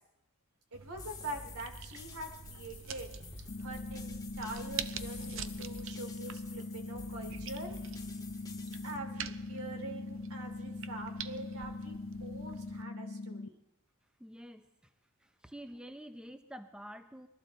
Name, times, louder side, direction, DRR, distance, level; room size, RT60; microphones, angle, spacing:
sound 1, 0.7-12.8, right 6 dB, 60° right, 0.6 m, -46 dB
voice 1, 0.7-3.1 3.6-7.8 8.8-13.6, right 2 dB, 85° right, 4 dB, 2.8 m, -44 dB
sound 2, 1.0-9.0, left 3 dB, 15° left, 1.3 m, -50 dB
sound 3, 3.5-13.5, left 2 dB, 45° left, 0.5 m, -42 dB
voice 2, 14.2-14.7 15.2-17.3, equal, 5° right, 8 dB, 0.6 m, -48 dB
21.5 x 14.0 x 4.0 m, 0.85 s
head